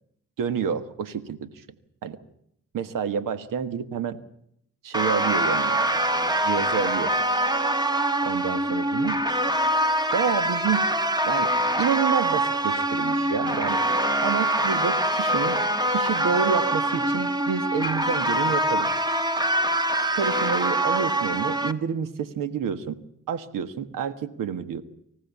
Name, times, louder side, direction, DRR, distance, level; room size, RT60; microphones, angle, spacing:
voice 1, 0.4-1.6 2.0-2.2 2.7-4.2 4.8-5.8 6.4-7.1 8.2-9.2 10.1-10.9 11.2-11.5 11.8-13.8 14.2-15.6 15.9-18.9 20.1-23.0 23.3-24.8, right 7 dB, 85° right, 13 dB, 1.5 m, -29 dB
sound 1, 4.9-21.7, right 1 dB, 10° right, 1.4 m, -24 dB
25.0 x 15.5 x 8.4 m, 0.73 s
cardioid pair, 90°, 32 cm